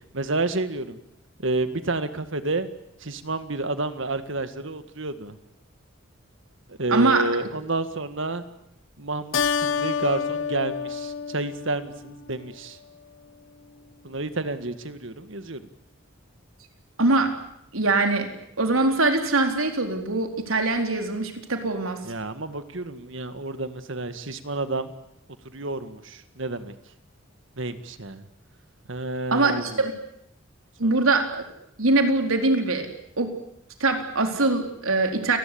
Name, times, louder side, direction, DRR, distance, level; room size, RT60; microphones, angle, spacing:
voice 1, 0.1-1.0 1.4-2.7 3.0-5.4 6.7-8.4 9.0-12.8 14.0-15.7 22.1-24.9 25.5-26.7 27.6-28.2 28.9-29.9 30.8-30.9, right 2 dB, 65° right, 10 dB, 1.9 m, -30 dB
voice 2, 6.9-7.3 17.0-17.3 17.7-18.3 18.6-22.0 29.3-29.9 30.8-31.4 31.8-32.9 33.2-33.4 33.8-35.4, right 2 dB, 90° right, 5 dB, 4.2 m, -22 dB
Keyboard (musical), 9.3-12.2, left 6 dB, 65° left, 1.0 m, -28 dB
28.5 x 20.0 x 8.7 m, 0.77 s
head